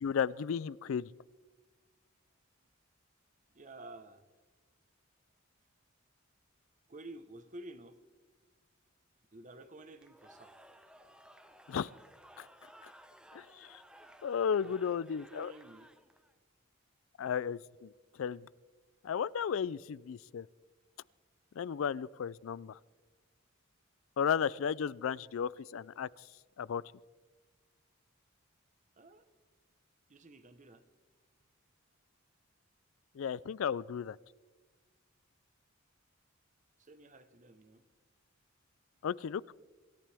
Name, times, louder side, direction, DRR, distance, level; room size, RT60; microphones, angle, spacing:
voice 1, 0.0-1.1 11.7-11.9 12.4-12.5 13.3-13.8 14.2-15.5 17.2-17.9 18.2-18.5 19.0-20.5 21.6-22.8 24.2-26.1 26.6-26.8 33.2-34.2 39.0-39.5, left 7 dB, 70° left, 0.4 m, -34 dB
voice 2, 3.5-4.2 6.9-8.0 9.3-10.5 14.6-15.9 29.0-29.3 30.1-30.8 36.8-37.8, right 2 dB, 40° right, 1.1 m, -51 dB
Cheering / Crowd, 10.0-16.3, right 1 dB, 5° right, 0.8 m, -58 dB
26.5 x 14.5 x 3.5 m
head